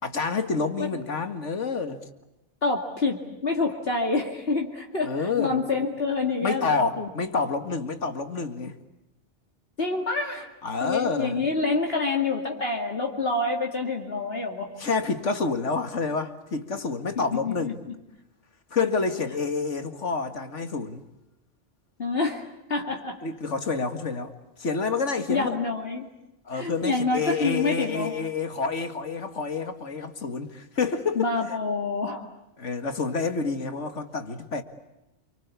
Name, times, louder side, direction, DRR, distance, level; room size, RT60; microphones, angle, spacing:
voice 1, 0.0-2.0 5.0-5.6 6.4-8.8 10.6-11.5 14.8-17.8 18.7-21.0 23.2-24.3 24.6-25.6 26.5-31.6 32.6-34.6, left 4 dB, 75° left, 2.3 m, -28 dB
voice 2, 2.6-7.1 9.8-10.5 10.8-14.7 17.2-18.0 22.0-22.4 22.7-23.2 25.3-26.1 26.5-28.1 31.2-32.2, left 3 dB, 50° left, 2.7 m, -27 dB
29.0 x 24.5 x 8.4 m
omnidirectional pair, 1.2 m